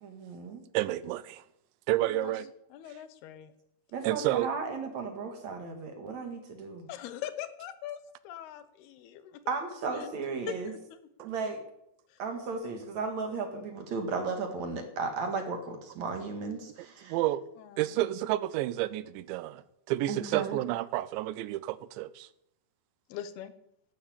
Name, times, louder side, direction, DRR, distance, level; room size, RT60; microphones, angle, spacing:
voice 1, 0.0-0.6 3.9-6.9 9.5-10.7 11.2-11.6 12.2-17.2 20.1-20.6, right 4 dB, 50° right, 2.4 m, -35 dB
voice 2, 0.7-1.4 1.9-2.5 4.0-4.5 11.2-11.3 17.0-17.4 17.8-19.6 19.9-22.3, right 15 dB, 85° right, 3.0 m, -30 dB
voice 3, 2.0-2.3 2.7-3.5 6.9-8.0 8.2-9.5 9.9-10.1 10.5-11.3 12.1-12.2 17.6-18.0 23.1-23.5, left 10 dB, 75° left, 2.7 m, -42 dB
12.5 x 11.0 x 8.5 m
omnidirectional pair, 5.1 m